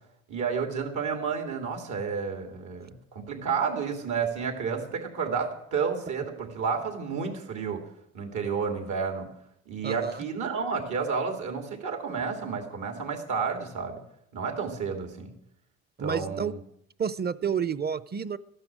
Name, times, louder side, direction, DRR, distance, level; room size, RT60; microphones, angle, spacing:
voice 1, 0.3-7.8 8.1-9.3 9.7-14.0 14.3-15.3 16.0-16.6, right 5 dB, 75° right, 4 dB, 3.3 m, -31 dB
voice 2, 9.8-10.2 16.0-16.5 17.0-18.4, right 7 dB, 35° right, 17 dB, 0.7 m, -30 dB
14.5 x 11.0 x 7.7 m, 0.77 s
cardioid pair, 90°, 30 cm